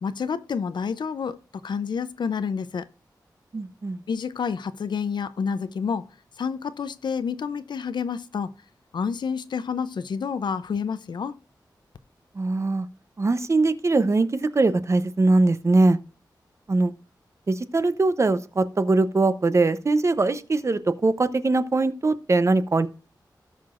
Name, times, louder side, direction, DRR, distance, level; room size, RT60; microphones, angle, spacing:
voice 1, 0.0-2.9 4.1-6.1 6.4-8.5 8.9-11.4, left 6 dB, 80° left, 0.5 m, -29 dB
voice 2, 3.5-4.0 12.3-12.9 13.2-16.0 16.7-16.9 17.5-22.9, right 3 dB, 40° right, 0.7 m, -21 dB
17.5 x 5.8 x 2.5 m
wide cardioid pair, 100°, 8 cm